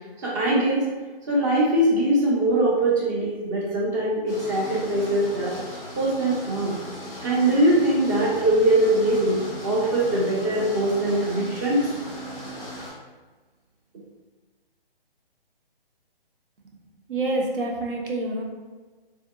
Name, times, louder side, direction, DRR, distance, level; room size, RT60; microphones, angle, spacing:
voice 1, 0.2-0.8 1.3-5.5 5.9-6.8 7.2-11.8, right 1 dB, 20° right, -5 dB, 0.6 m, -22 dB
sound 1, 4.3-12.9, equal, 10° left, 0.8 m, -37 dB
voice 2, 17.1-18.4, right 2 dB, 60° right, 0 dB, 0.8 m, -27 dB
3.6 x 2.6 x 2.2 m, 1.3 s
figure-of-eight pair, 145°, 30 cm